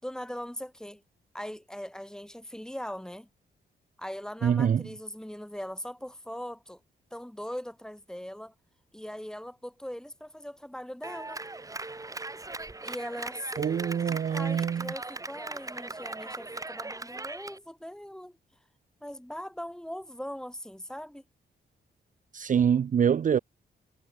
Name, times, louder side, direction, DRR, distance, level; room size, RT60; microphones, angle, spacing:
voice 1, 0.0-1.0 1.3-3.3 4.0-6.8 7.1-8.5 8.9-11.4 12.8-18.4 19.0-21.2, equal, 5° left, 6.2 m, -40 dB
voice 2, 4.4-4.8 13.6-14.9 22.3-23.4, right 8 dB, 45° right, 0.6 m, -25 dB
Clapping, 11.0-17.6, right 2 dB, 20° right, 2.2 m, -39 dB
cardioid pair, 110°, 18 cm